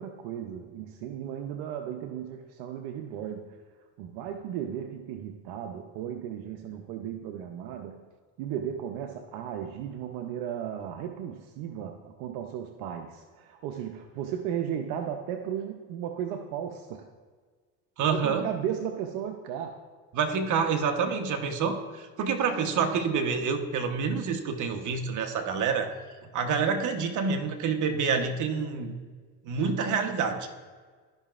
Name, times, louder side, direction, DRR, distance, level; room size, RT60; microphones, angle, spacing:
voice 1, 0.0-3.6 4.0-8.0 8.4-17.1 18.1-19.8, right 9 dB, 80° right, 5 dB, 0.7 m, -35 dB
voice 2, 18.0-18.5 20.1-25.9 26.3-29.0 29.4-30.5, right 5 dB, 55° right, 5 dB, 1.1 m, -27 dB
13.0 x 5.6 x 2.5 m, 1.5 s
supercardioid pair, 90°, 36 cm